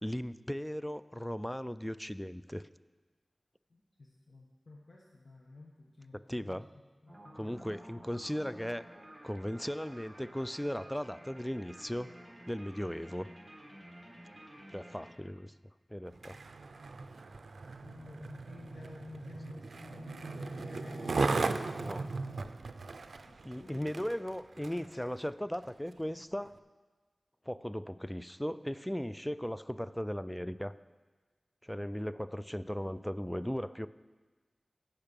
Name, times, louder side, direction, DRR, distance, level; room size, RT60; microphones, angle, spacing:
voice 1, 0.0-2.6 6.3-6.7 7.3-8.8 9.2-12.1 12.5-13.3 14.7-15.5 15.9-16.4 21.8-22.1 23.4-26.5 27.5-30.7 31.6-33.9, equal, 5° left, 14 dB, 0.3 m, -37 dB
voice 2, 3.7-6.6 7.0-7.6 17.8-21.2 23.3-23.8, left 2 dB, 60° left, -2 dB, 1.1 m, -51 dB
sound 1, 7.1-15.1, right 1 dB, 20° right, 1.7 m, -52 dB
Skateboard, 16.1-24.9 25.5-25.7, right 3 dB, 90° right, 0.4 m, -37 dB
15.5 x 5.8 x 5.3 m, 1.3 s
wide cardioid pair, 75°, 0 cm